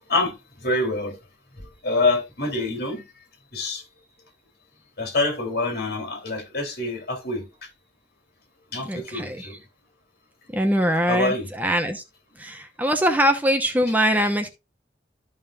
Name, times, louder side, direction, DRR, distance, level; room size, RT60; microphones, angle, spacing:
voice 1, 0.1-1.1 1.6-3.0 3.5-3.8 5.0-7.4 8.7-9.6 11.1-11.5, left 2 dB, 55° left, 3.1 m, -26 dB
voice 2, 8.8-9.5 10.5-12.0 12.4-14.5, equal, 10° right, 0.9 m, -22 dB
13.5 x 5.5 x 2.4 m
head